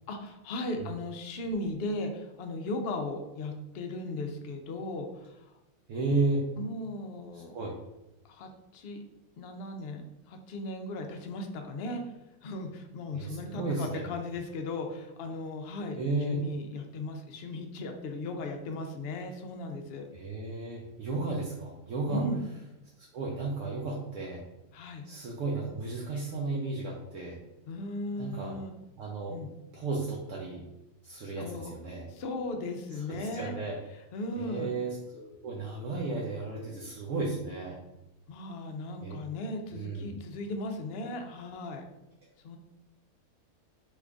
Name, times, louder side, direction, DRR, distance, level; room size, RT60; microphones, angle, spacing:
voice 1, 0.1-5.4 6.6-7.5 8.3-9.0 9.4-10.0 10.3-12.0 12.4-16.0 16.3-20.1 22.1-22.4 24.7-25.0 27.7-28.7 29.3-29.5 31.4-31.7 32.1-33.5 34.1-34.7 38.3-41.8 42.4-42.6, left 2 dB, 65° left, 4 dB, 0.6 m, -37 dB
voice 2, 5.9-6.5 7.3-7.8 13.1-14.0 15.9-16.5 20.1-22.3 23.0-24.4 25.0-27.4 28.2-28.6 29.0-29.4 29.7-30.7 31.0-32.1 32.9-33.8 34.4-37.8 39.0-39.2 39.7-40.1, right 3 dB, 70° right, -3 dB, 0.9 m, -33 dB
3.0 x 2.5 x 3.4 m, 0.95 s
omnidirectional pair, 1.5 m